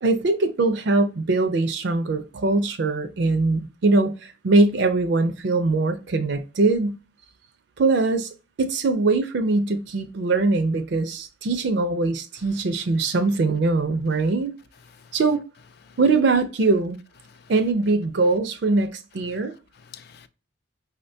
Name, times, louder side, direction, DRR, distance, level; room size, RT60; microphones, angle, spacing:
voice 1, 0.0-7.0 7.8-8.3 8.6-14.5 15.1-15.4 16.0-17.0 17.5-19.5, right 3 dB, 55° right, 0.4 m, -22 dB
voice 2, 14.7-15.2 15.8-16.0 17.2-17.5 19.3-20.3, left 7 dB, 50° left, 0.3 m, -50 dB
5.1 x 2.1 x 2.6 m
head